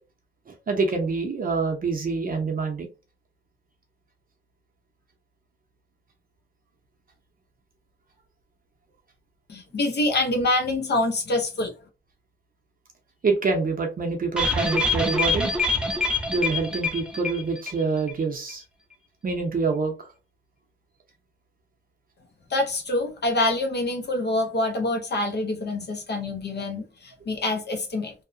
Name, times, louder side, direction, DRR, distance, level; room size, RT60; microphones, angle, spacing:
voice 1, 0.7-2.9 13.2-15.5 16.3-18.6 19.2-19.9, right 4 dB, 50° right, 0.6 m, -26 dB
voice 2, 9.5-11.7 22.5-28.1, left 2 dB, 65° left, 0.6 m, -26 dB
sound 1, 14.4-17.8 18.1-18.2 18.5-18.6, left 2 dB, 5° right, 0.5 m, -25 dB
2.7 x 2.0 x 2.4 m
wide cardioid pair, 135°, 19 cm